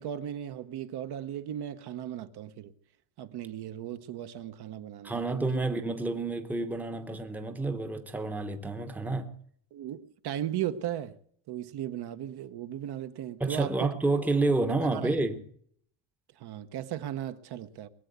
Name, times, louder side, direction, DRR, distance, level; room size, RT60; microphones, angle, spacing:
voice 1, 0.0-2.7 3.2-5.6 9.7-11.2 11.5-13.9 14.8-15.3 16.4-17.9, right 11 dB, 55° right, 1.0 m, -36 dB
voice 2, 5.0-9.3 13.4-15.4, right 2 dB, 5° right, 0.9 m, -29 dB
21.5 x 8.3 x 8.0 m
cardioid pair, 170°, 48 cm